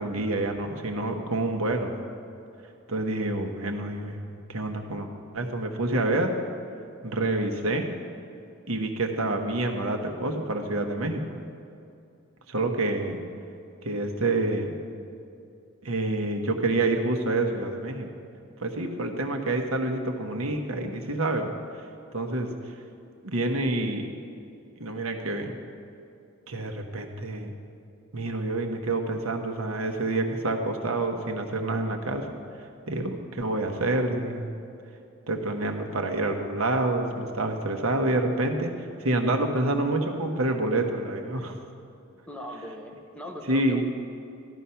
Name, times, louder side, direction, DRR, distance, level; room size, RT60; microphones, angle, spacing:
voice 1, 0.0-1.9 2.9-4.2 4.5-5.1 5.3-6.4 7.0-7.9 8.7-11.2 12.5-13.2 13.8-14.8 15.8-18.1 18.6-21.5 22.1-22.5 23.2-24.1 24.8-25.5 26.5-27.5 28.1-32.3 32.9-34.5 35.3-41.5 43.5-43.8, right 2 dB, 75° right, 4 dB, 1.2 m, -27 dB
voice 2, 42.3-43.8, equal, 5° left, 0 dB, 1.1 m, -39 dB
14.5 x 11.0 x 5.7 m, 2.5 s
head